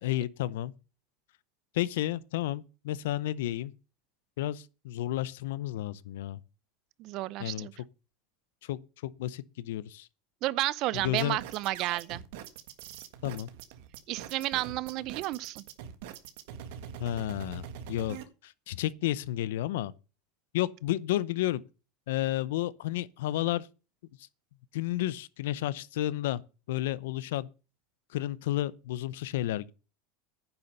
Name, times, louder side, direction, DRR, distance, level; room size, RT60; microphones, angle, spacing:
voice 1, 0.0-0.7 1.7-3.7 4.4-6.4 7.4-7.7 8.6-10.1 11.0-11.4 13.2-13.5 17.0-18.2 18.4-19.9 20.5-21.6 22.1-23.7 24.7-26.4 26.7-27.5 28.1-29.7, left 14 dB, 85° left, 0.7 m, -31 dB
voice 2, 7.0-7.7 10.4-12.2 14.1-15.6, right 17 dB, 50° right, 0.6 m, -31 dB
sound 1, 10.9-18.2, right 8 dB, 75° right, 1.6 m, -43 dB
9.9 x 7.0 x 6.5 m
supercardioid pair, 135°, 0 cm